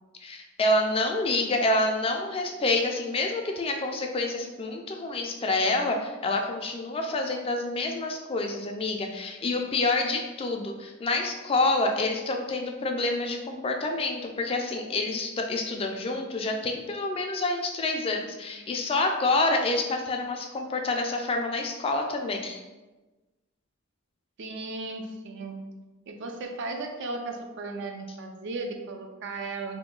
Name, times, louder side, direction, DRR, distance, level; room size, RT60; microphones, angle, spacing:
voice 1, 0.2-22.6, left 2 dB, 25° left, 3 dB, 0.3 m, -27 dB
voice 2, 24.4-25.6 26.1-29.8, right 3 dB, 60° right, 4 dB, 0.4 m, -36 dB
2.8 x 2.2 x 3.7 m, 1.2 s
head